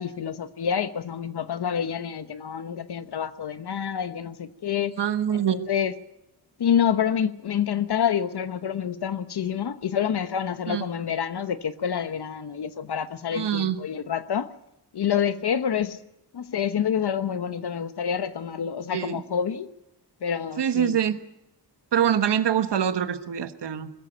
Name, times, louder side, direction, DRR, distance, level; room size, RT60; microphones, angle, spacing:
voice 1, 0.0-4.9 5.5-5.9 6.6-14.5 14.9-16.0 16.3-19.7 20.2-21.0, left 8 dB, 65° left, 1.2 m, -27 dB
voice 2, 5.0-5.5 10.7-10.8 13.3-13.8 18.9-19.2 20.6-21.2 21.9-23.9, right 9 dB, 70° right, 1.3 m, -24 dB
21.0 x 14.0 x 9.0 m
wide cardioid pair, 95°, 42 cm